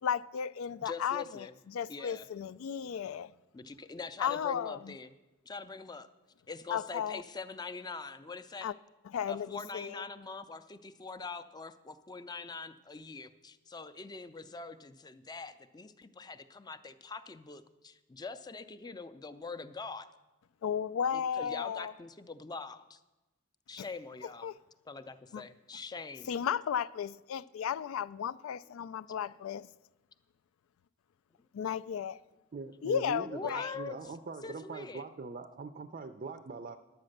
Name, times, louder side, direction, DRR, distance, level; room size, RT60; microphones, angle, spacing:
voice 1, 0.0-3.3 4.2-4.9 6.7-7.2 8.6-8.7 9.0-10.0 20.6-21.9 23.8-23.9 24.4-24.5 25.3-25.5 26.3-29.7 31.6-32.2 32.8-33.8, left 8 dB, 85° left, 0.3 m, -34 dB
voice 2, 0.8-1.5 1.9-2.3 3.5-5.2 5.5-6.1 6.5-8.7 9.3-20.1 21.1-23.0 23.7-24.5 24.9-26.3 33.3-34.2 34.4-35.1, left 4 dB, 20° left, 0.4 m, -43 dB
voice 3, 32.5-36.8, right 4 dB, 40° right, 0.4 m, -42 dB
10.5 x 8.6 x 6.5 m
head